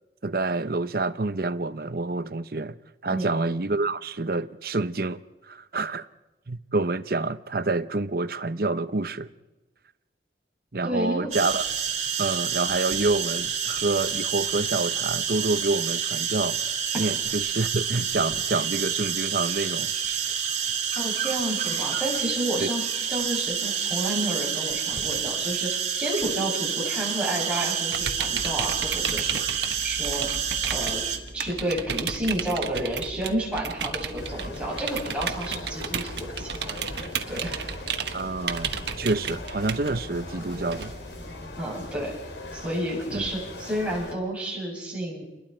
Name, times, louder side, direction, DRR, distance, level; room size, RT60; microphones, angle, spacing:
voice 1, 0.2-2.8 3.0-6.1 6.5-9.3 10.7-11.6 12.2-19.9 22.6-22.7 38.1-40.9 43.1-43.3, right 3 dB, 55° right, 0.9 m, -28 dB
voice 2, 10.8-11.3 21.0-30.3 30.7-31.0 31.3-36.8 37.3-37.6 41.6-42.1 42.5-45.2, right 1 dB, 5° right, 7.6 m, -31 dB
sound 1, 11.3-31.2, right 7 dB, 40° right, 2.4 m, -28 dB
sound 2, 27.9-41.6, right 6 dB, 75° right, 1.3 m, -34 dB
sound 3, 34.2-44.1, left 2 dB, 90° left, 3.0 m, -39 dB
29.5 x 21.5 x 4.5 m
head